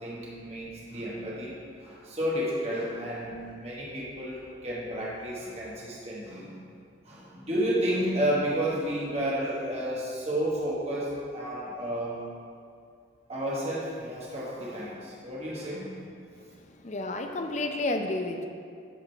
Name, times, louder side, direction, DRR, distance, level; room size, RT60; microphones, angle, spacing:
voice 1, 0.0-6.5 7.0-12.2 13.3-16.0, equal, 35° right, -6 dB, 1.3 m, -31 dB
voice 2, 16.3-18.5, left 2 dB, 40° left, 5 dB, 0.5 m, -32 dB
10.5 x 3.9 x 4.5 m, 2.3 s
head